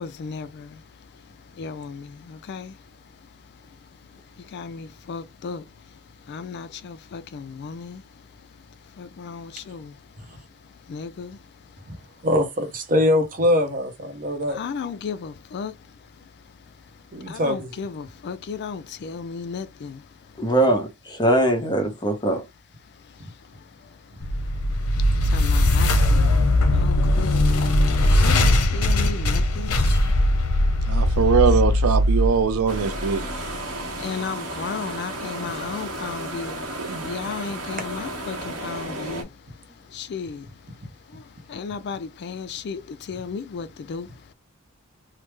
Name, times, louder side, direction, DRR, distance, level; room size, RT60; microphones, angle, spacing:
voice 1, 0.0-12.3 14.5-20.5 22.8-31.2 34.0-44.3, left 5 dB, 50° left, 0.3 m, -36 dB
voice 2, 12.2-14.6 17.1-17.7, left 1 dB, 40° right, 0.7 m, -22 dB
voice 3, 20.4-22.4, right 1 dB, 20° left, 0.7 m, -21 dB
sound 1, 24.2-33.4, left 1 dB, 90° left, 0.6 m, -20 dB
voice 4, 30.9-33.2 36.8-37.1, right 6 dB, 75° right, 0.5 m, -22 dB
sound 2, 32.7-39.2, right 1 dB, 90° right, 1.0 m, -33 dB
3.3 x 2.0 x 3.2 m
head